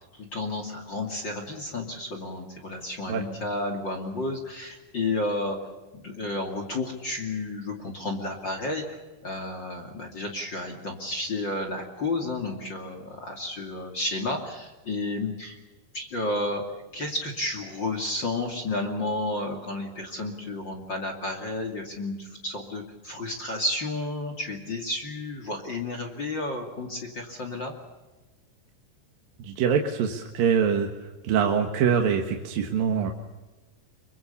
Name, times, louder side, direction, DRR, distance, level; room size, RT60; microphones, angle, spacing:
voice 1, 0.1-5.6 5.9-15.6 15.9-16.6 16.9-27.7, left 2 dB, 30° left, 3 dB, 2.6 m, -31 dB
voice 2, 29.4-33.1, right 7 dB, 65° right, 3 dB, 3.0 m, -24 dB
25.5 x 24.0 x 7.0 m, 1.2 s
omnidirectional pair, 4.8 m